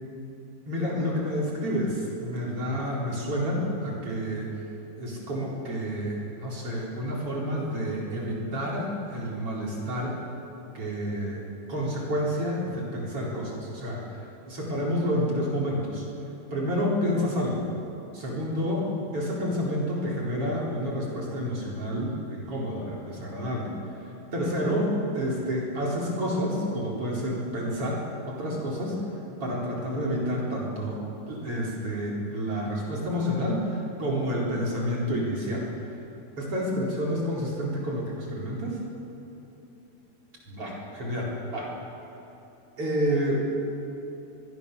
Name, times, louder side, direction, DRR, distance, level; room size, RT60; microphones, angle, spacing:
voice 1, 0.7-4.5 5.0-10.2 10.7-11.4 11.7-16.1 16.5-17.6 18.1-29.0 29.4-35.7 36.4-38.8 40.5-41.7 42.8-43.4, equal, 35° right, -3 dB, 4.9 m, -29 dB
23.0 x 22.5 x 6.9 m, 3.0 s
omnidirectional pair, 4.5 m